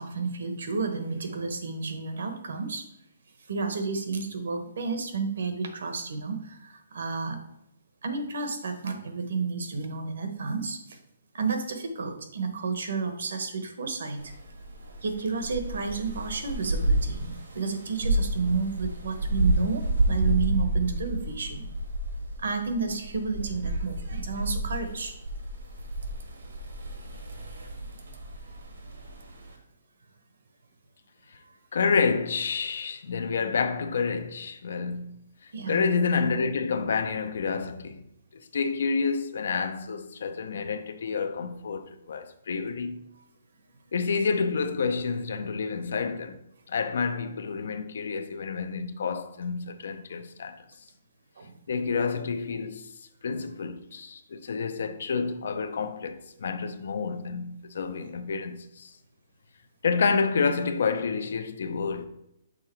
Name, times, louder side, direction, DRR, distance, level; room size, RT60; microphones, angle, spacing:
voice 1, 0.0-2.8 3.5-7.4 8.0-11.0 11.3-14.3 15.0-21.7 22.4-25.1 35.5-35.9 51.4-51.6 58.0-58.1, right 4 dB, 60° right, 1.1 m, -31 dB
sound 1, 14.2-29.6, right 1 dB, 80° right, 1.7 m, -30 dB
voice 2, 31.7-35.2 35.7-38.0 38.3-43.1 43.9-46.4 46.7-50.6 51.7-52.9 53.2-58.9 59.8-62.1, left 5 dB, 55° left, 0.6 m, -29 dB
6.4 x 3.7 x 4.4 m
hypercardioid pair, 180°, 0 cm